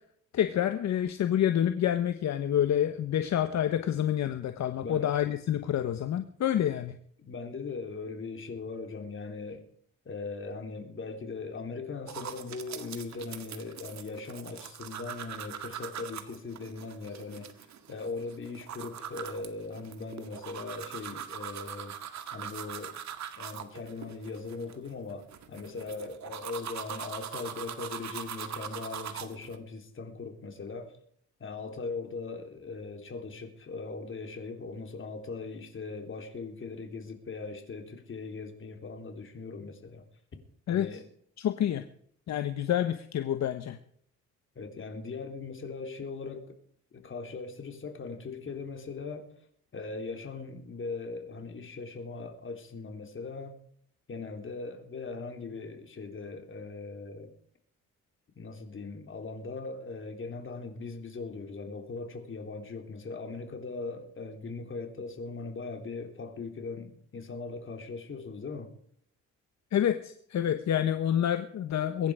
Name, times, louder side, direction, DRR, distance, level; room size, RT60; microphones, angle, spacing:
voice 1, 0.3-7.0 40.7-40.9 41.4-41.8 42.3-43.8 69.7-72.1, left 10 dB, 65° left, 1.2 m, -28 dB
voice 2, 7.2-9.6 10.1-17.5 17.9-22.0 22.3-22.9 23.4-30.9 31.4-40.0 40.7-41.1 44.6-46.5 46.9-49.3 49.7-53.6 54.1-57.3 58.4-68.7, left 4 dB, 40° left, 3.6 m, -40 dB
sound 1, 12.1-29.6, right 9 dB, 65° right, 2.0 m, -42 dB
22.5 x 10.5 x 5.0 m
cardioid pair, 90°, 30 cm